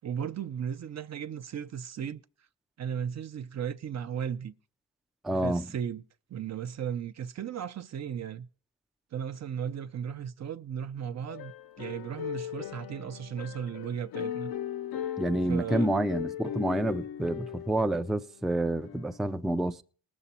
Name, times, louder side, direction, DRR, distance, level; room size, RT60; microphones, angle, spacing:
voice 1, 0.0-2.2 2.8-4.5 5.4-6.0 6.3-8.5 9.1-14.5 15.5-15.9, right 8 dB, 45° right, 0.6 m, -36 dB
voice 2, 5.2-5.7 15.2-19.8, right 1 dB, ahead, 0.4 m, -28 dB
sound 1, 11.3-18.3 18.8-19.2, left 9 dB, 75° left, 0.8 m, -37 dB
19.0 x 7.1 x 4.2 m
cardioid pair, 90°, 36 cm